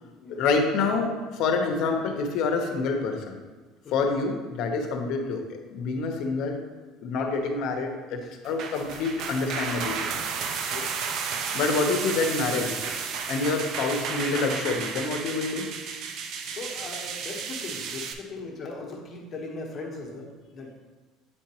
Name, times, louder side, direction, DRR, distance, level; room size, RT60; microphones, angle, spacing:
voice 1, 0.3-3.4 3.9-6.6 7.0-10.1 11.5-12.7 13.3-15.7, left 4 dB, 60° left, 4 dB, 0.9 m, -27 dB
sound 1, 8.4-18.1, right 6 dB, 50° right, 0.5 m, -32 dB
voice 2, 10.7-11.0 13.4-13.6 16.5-20.7, left 3 dB, 30° left, -1 dB, 1.2 m, -39 dB
8.5 x 4.4 x 3.0 m, 1.3 s
cardioid pair, 145°, 0 cm